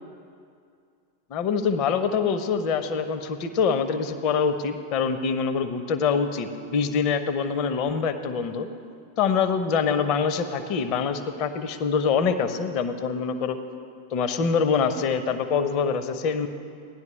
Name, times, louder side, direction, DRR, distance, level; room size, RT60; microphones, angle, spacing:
voice 1, 1.3-8.7 9.2-13.6 14.1-16.5, left 6 dB, 40° left, 9 dB, 0.7 m, -25 dB
17.0 x 10.5 x 3.2 m, 2.4 s
figure-of-eight pair, 90°, 0 cm